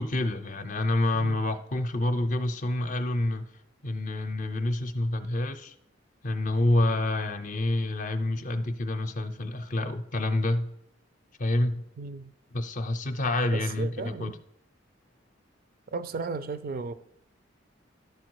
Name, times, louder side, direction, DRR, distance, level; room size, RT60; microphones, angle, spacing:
voice 1, 0.0-3.5 3.8-5.7 6.2-10.7 11.4-11.8 12.5-14.3, left 1 dB, 40° left, 0.6 m, -28 dB
voice 2, 12.0-12.3 13.5-14.4 15.9-16.9, right 4 dB, 50° right, 0.4 m, -35 dB
11.5 x 4.6 x 4.6 m
head